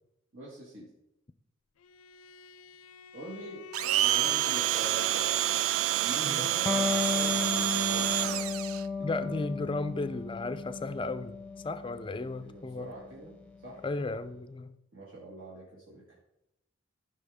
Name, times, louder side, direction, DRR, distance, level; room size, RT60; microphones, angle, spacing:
voice 1, 0.3-0.9 3.1-3.6 4.0-5.3 6.0-8.4 9.0-9.4 12.4-13.4 13.6-13.8 14.9-16.2, right 2 dB, 65° right, -6 dB, 2.0 m, -44 dB
Bowed string instrument, 1.8-6.5, left 11 dB, 85° left, 0.4 m, -48 dB
Domestic sounds home sounds, 3.7-8.8, right 12 dB, 90° right, 0.3 m, -28 dB
Electric guitar, 6.7-13.8, left 4 dB, 5° left, 0.8 m, -34 dB
voice 2, 9.0-11.4 11.6-12.9 13.8-14.8, left 3 dB, 25° left, 12 dB, 0.4 m, -34 dB
14.0 x 5.7 x 3.6 m, 0.85 s
head